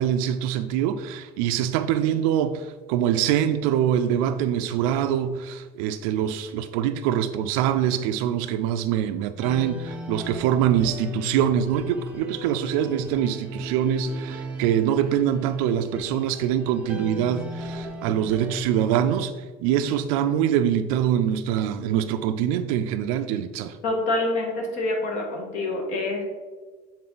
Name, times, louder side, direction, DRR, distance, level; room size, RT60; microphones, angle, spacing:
voice 1, 0.0-23.8, right 10 dB, 85° right, 8 dB, 0.4 m, -24 dB
sound 1, 9.4-18.6, left 1 dB, 5° right, 0.6 m, -36 dB
voice 2, 23.8-26.2, left 2 dB, 45° left, 1 dB, 1.4 m, -26 dB
7.6 x 4.2 x 3.9 m, 1.4 s
cardioid pair, 175°, 18 cm